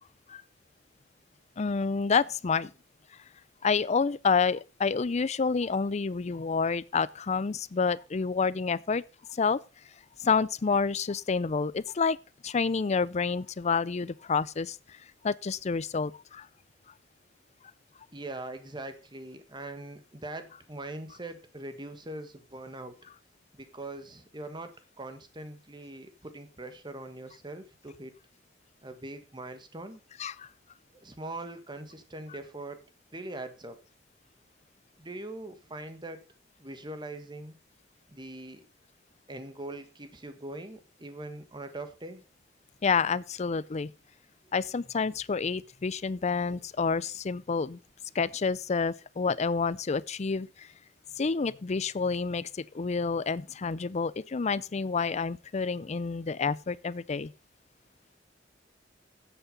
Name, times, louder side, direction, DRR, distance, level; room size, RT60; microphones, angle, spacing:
voice 1, 1.6-2.7 3.6-9.0 9.3-9.6 10.2-12.2 12.4-16.5 30.2-30.5 42.8-43.9 44.5-47.8 48.1-50.7 51.2-57.3, left 5 dB, 40° left, 0.5 m, -29 dB
voice 2, 18.1-23.0 23.5-28.1 28.8-30.0 30.9-32.8 33.1-33.8 35.0-36.2 36.6-37.6 38.1-38.6 39.3-42.2, right 2 dB, 25° right, 1.5 m, -42 dB
9.8 x 8.1 x 5.3 m
head